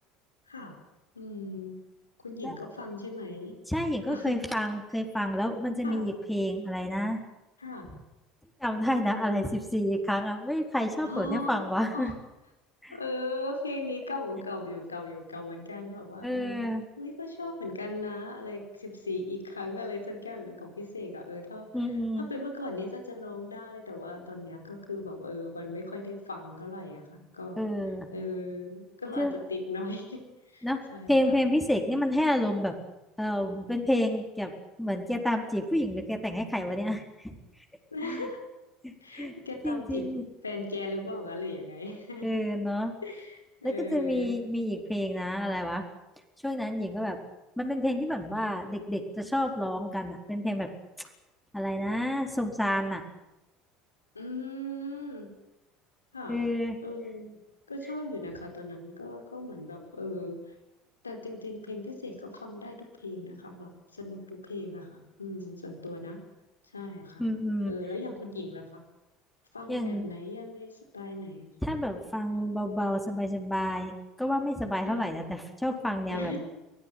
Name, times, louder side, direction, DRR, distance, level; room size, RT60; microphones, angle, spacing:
voice 1, 0.5-0.8 1.1-1.8 2.2-3.5 4.1-4.4 5.8-6.1 7.6-7.9 9.1-9.6 11.0-12.1 12.9-16.6 17.0-21.7 22.2-27.7 28.1-30.3 30.5-31.3 37.9-38.4 39.0-40.1 40.4-42.4 43.0-44.4 54.1-55.3 56.1-56.4 56.8-57.4 57.7-60.5 61.0-62.8 63.0-66.2 66.7-67.3 67.7-68.8 69.5-71.5 74.8-75.1 76.1-76.5, left 2 dB, 90° left, 4 dB, 4.5 m, -38 dB
voice 2, 3.7-7.2 7.9-8.0 8.6-12.2 12.8-13.0 16.2-16.8 21.7-22.3 27.6-28.1 29.2-29.3 30.6-30.8 31.1-32.8 33.2-34.5 34.8-37.4 38.0-38.3 38.8-39.3 39.6-40.2 42.2-42.9 43.6-45.8 46.4-47.2 47.6-50.7 51.0-51.1 51.5-53.0 56.3-56.8 67.2-67.7 69.7-70.1 71.6-76.5, left 1 dB, 5° left, 4 dB, 4.3 m, -29 dB
24.0 x 17.0 x 9.4 m, 0.97 s
figure-of-eight pair, 65°, 0 cm